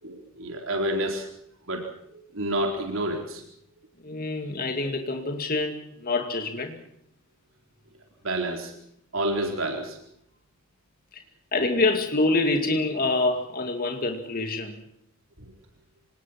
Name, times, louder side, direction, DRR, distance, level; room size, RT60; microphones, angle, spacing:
voice 1, 0.0-1.3 1.7-1.8 2.1-3.4 8.2-8.7 9.1-10.0 15.4-15.5, right 1 dB, 70° right, 2 dB, 4.3 m, -29 dB
voice 2, 4.0-6.8 11.1-11.2 11.5-14.8, left 2 dB, 45° left, 5 dB, 2.5 m, -26 dB
26.5 x 19.5 x 6.0 m, 0.74 s
head